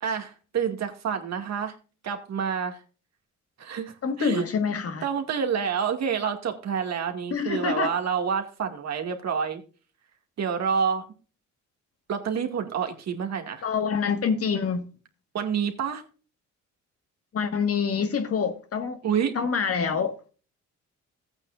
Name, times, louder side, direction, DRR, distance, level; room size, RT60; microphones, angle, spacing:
voice 1, 0.0-1.8 2.0-2.8 3.6-4.5 5.0-9.6 10.4-11.1 12.1-13.6 15.3-16.0 19.0-19.3, right 7 dB, 60° right, 2.2 m, -28 dB
voice 2, 4.0-5.1 7.3-7.9 13.6-14.9 17.3-19.0 19.4-20.2, left 6 dB, 50° left, 1.6 m, -26 dB
15.0 x 8.9 x 2.5 m
cardioid pair, 90°, 30 cm